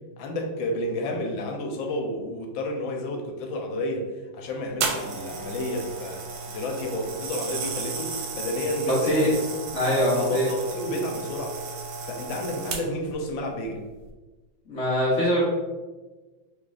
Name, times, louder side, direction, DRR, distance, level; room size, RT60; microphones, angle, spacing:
voice 1, 0.2-4.1 4.3-9.5 10.0-11.8 12.1-13.8, left 1 dB, 80° left, 2 dB, 1.3 m, -31 dB
sound 1, 4.8-13.1 13.9-14.1, right 4 dB, 80° right, 1.3 m, -34 dB
voice 2, 9.7-10.5 14.7-15.4, equal, 65° left, -7 dB, 0.7 m, -23 dB
3.2 x 2.4 x 3.8 m, 1.2 s
omnidirectional pair, 2.2 m